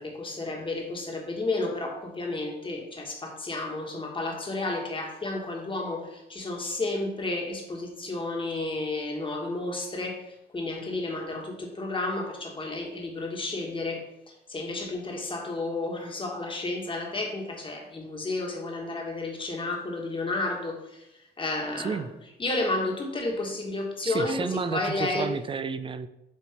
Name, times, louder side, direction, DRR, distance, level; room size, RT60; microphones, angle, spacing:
voice 1, 0.0-21.1 21.4-22.0 22.4-25.3, left 2 dB, 25° left, 1 dB, 1.5 m, -32 dB
voice 2, 21.8-22.1 24.0-26.1, right 5 dB, 25° right, 12 dB, 0.4 m, -31 dB
7.6 x 2.9 x 4.3 m, 0.86 s
cardioid pair, 90°, 20 cm